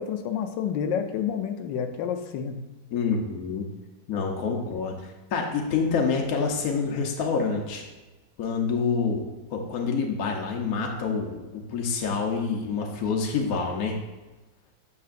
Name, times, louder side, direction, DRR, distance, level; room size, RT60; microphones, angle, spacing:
voice 1, 0.0-2.6, left 8 dB, 75° left, 6 dB, 1.3 m, -29 dB
voice 2, 2.9-3.6 4.1-7.8 8.4-14.0, left 5 dB, 60° left, 1 dB, 1.1 m, -27 dB
8.4 x 6.5 x 2.5 m, 1.1 s
omnidirectional pair, 2.0 m